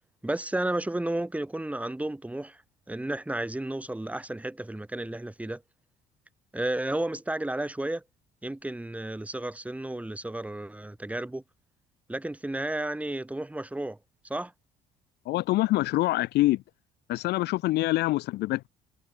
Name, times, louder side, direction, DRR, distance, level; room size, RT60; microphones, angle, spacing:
voice 1, 0.2-2.6 2.9-5.6 6.5-8.0 8.4-11.4 12.1-14.0 14.2-14.5, right 1 dB, 10° right, 4.0 m, -32 dB
voice 2, 15.3-16.6 17.1-18.7, left 17 dB, 80° left, 1.8 m, -25 dB
cardioid pair, 110°, 17 cm